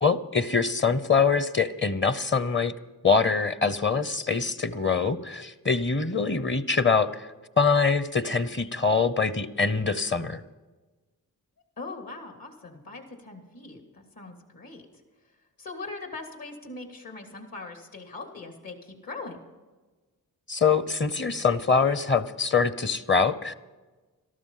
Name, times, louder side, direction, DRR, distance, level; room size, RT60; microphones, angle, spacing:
voice 1, 0.0-2.7 3.0-7.3 7.6-10.4 20.5-23.5, left 5 dB, 30° left, 14 dB, 0.9 m, -24 dB
voice 2, 11.8-14.8 15.6-19.4, left 3 dB, 60° left, 3 dB, 3.0 m, -41 dB
13.0 x 12.5 x 5.7 m, 1.2 s
cardioid pair, 50°, 38 cm